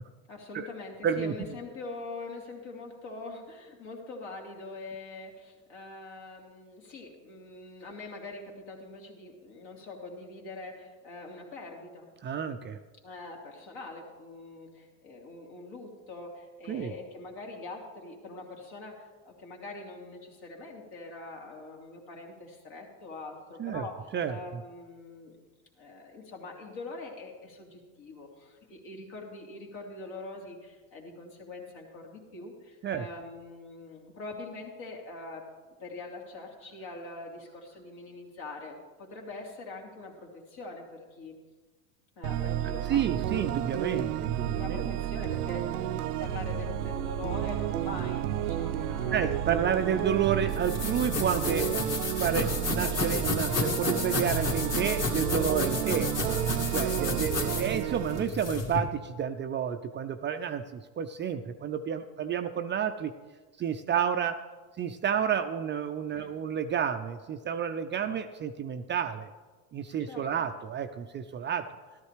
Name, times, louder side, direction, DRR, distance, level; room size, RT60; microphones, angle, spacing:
voice 1, 0.3-12.1 13.0-24.0 24.3-25.4 25.8-35.4 35.8-41.4 42.2-43.0 44.4-49.3 55.8-56.2 66.1-66.3 68.0-68.1 70.1-70.3, left 3 dB, 60° left, 0 dB, 2.8 m, -43 dB
voice 2, 1.0-1.6 12.2-12.8 16.7-16.9 23.6-23.8 24.1-24.6 32.8-33.1 42.9-44.9 49.1-51.7 52.2-56.1 56.7-63.1 63.6-64.4 64.8-69.3 69.7-71.7, right 8 dB, 25° right, 8 dB, 0.4 m, -30 dB
sound 1, 42.2-58.2, right 11 dB, 85° right, 0.6 m, -31 dB
sound 2, 50.5-58.8, left 3 dB, 35° left, 2.1 m, -32 dB
13.5 x 12.5 x 3.3 m, 1.3 s
hypercardioid pair, 95°, 44 cm